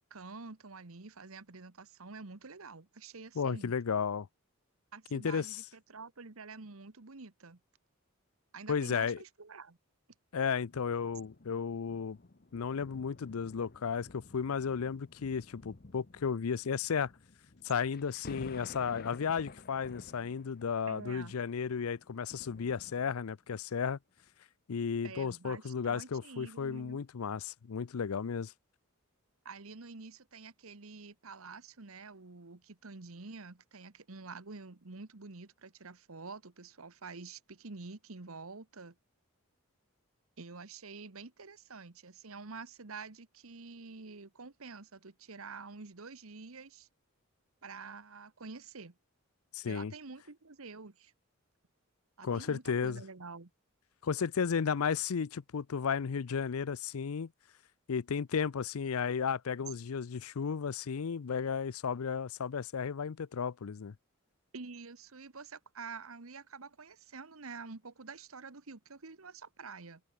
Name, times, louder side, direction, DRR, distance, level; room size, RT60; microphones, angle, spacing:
voice 1, 0.1-3.7 4.9-7.6 8.5-9.8 20.9-21.3 25.0-27.0 29.4-39.0 40.4-46.9 47.6-49.0 49.7-51.1 52.2-53.5 64.5-70.0, right 4 dB, 75° right, 1.3 m, -48 dB
voice 2, 3.4-4.3 5.1-5.6 8.7-9.2 10.3-12.2 12.5-17.1 17.6-24.0 24.7-28.5 49.5-49.9 52.2-53.0 54.0-57.3 57.9-63.9, left 6 dB, 85° left, 0.5 m, -34 dB
sound 1, 10.7-23.5 24.2-24.3, left 3 dB, 45° left, 0.9 m, -53 dB
head